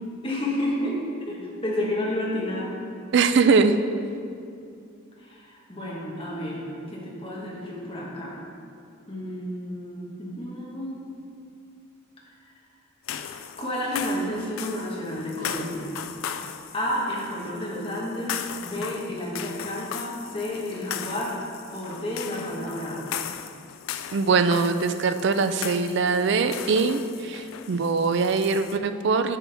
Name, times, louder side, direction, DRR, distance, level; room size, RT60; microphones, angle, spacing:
voice 1, 0.2-2.8 5.2-8.3 9.1-11.1 13.6-15.9 16.7-21.4 21.7-23.1, left 1 dB, 25° left, -5 dB, 1.4 m, -31 dB
voice 2, 3.1-3.7 24.1-29.4, right 4 dB, 55° right, 10 dB, 0.4 m, -22 dB
sound 1, 13.0-28.8, left 9 dB, 75° left, 0.4 m, -37 dB
9.1 x 5.9 x 3.5 m, 2.4 s
head